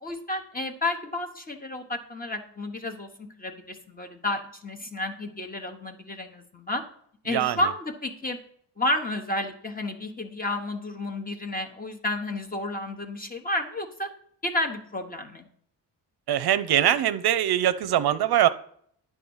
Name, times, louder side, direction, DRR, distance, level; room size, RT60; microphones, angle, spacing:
voice 1, 0.0-6.8 7.2-8.4 8.8-14.1 14.4-15.5, left 1 dB, 20° left, 5 dB, 1.1 m, -31 dB
voice 2, 7.3-7.6 16.3-18.5, right 11 dB, 60° right, 13 dB, 0.6 m, -22 dB
10.0 x 3.6 x 7.1 m, 0.65 s
cardioid pair, 95°, 43 cm